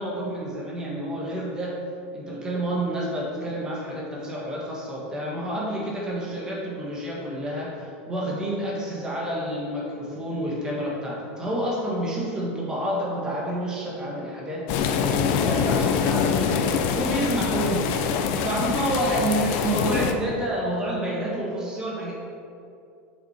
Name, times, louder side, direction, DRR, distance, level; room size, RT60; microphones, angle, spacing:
voice 1, 0.0-1.8 2.1-22.1, right 1 dB, 10° right, -4 dB, 1.5 m, -29 dB
sound 1, 14.7-20.1, left 6 dB, 50° left, 0.6 m, -24 dB
6.5 x 6.4 x 4.4 m, 2.5 s
supercardioid pair, 165°, 6 cm